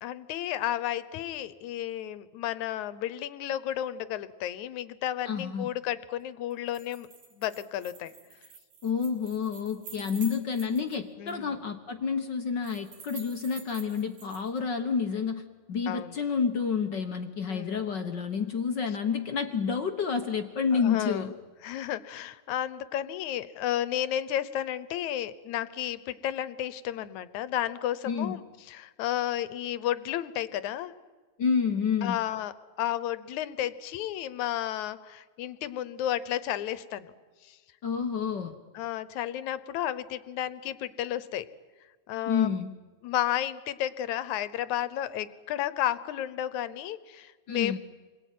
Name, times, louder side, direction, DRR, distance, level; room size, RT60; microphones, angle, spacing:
voice 1, 0.0-7.1 7.4-8.1 11.2-11.6 15.9-16.2 17.5-17.8 20.7-21.3 21.6-28.4 28.7-30.9 32.0-37.1 37.4-37.6 38.7-41.5 42.1-42.5 43.0-47.8, left 12 dB, 75° left, 15 dB, 2.3 m, -32 dB
voice 2, 5.2-5.7 8.8-15.4 15.7-21.3 28.0-28.4 31.4-32.2 37.8-38.6 42.3-42.7 47.5-47.8, left 6 dB, 55° left, 7 dB, 1.3 m, -29 dB
sound 1, 6.5-11.0 11.3-11.4 12.6-14.6, right 6 dB, 85° right, 4.5 m, -48 dB
28.0 x 22.0 x 9.3 m, 1.4 s
omnidirectional pair, 3.4 m